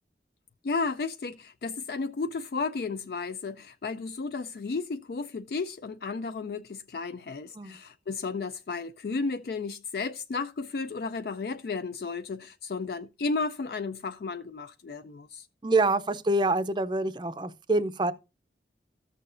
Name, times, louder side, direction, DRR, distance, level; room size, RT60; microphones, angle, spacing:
voice 1, 0.6-15.5, left 4 dB, 60° left, 0.4 m, -33 dB
voice 2, 15.6-18.1, right 2 dB, 25° right, 0.5 m, -26 dB
14.0 x 6.7 x 2.5 m
head